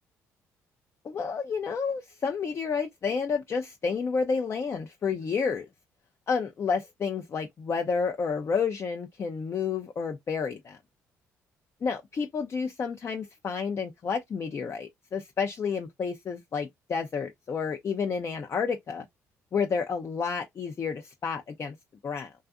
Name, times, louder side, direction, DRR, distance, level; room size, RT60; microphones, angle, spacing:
voice 1, 1.0-5.7 6.3-10.8 11.8-19.0 19.5-21.7 22.0-22.3, left 5 dB, 40° left, 0.4 m, -30 dB
2.5 x 2.3 x 2.3 m
supercardioid pair, 65°, 7 cm